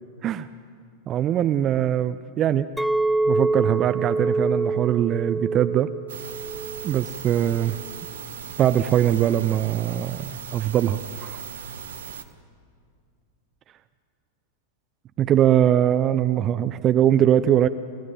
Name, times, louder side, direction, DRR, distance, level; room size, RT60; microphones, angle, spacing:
voice 1, 1.1-2.7 3.3-5.9 6.8-7.8 8.6-11.4 15.2-17.7, right 11 dB, 30° right, 13 dB, 0.6 m, -21 dB
Chink clink, 2.8-7.1 7.4-7.9, right 3 dB, ahead, 0.8 m, -26 dB
sound 1, 6.1-12.2, right 7 dB, 60° right, 1.2 m, -38 dB
28.5 x 15.5 x 9.2 m, 2.3 s
figure-of-eight pair, 90°, 0 cm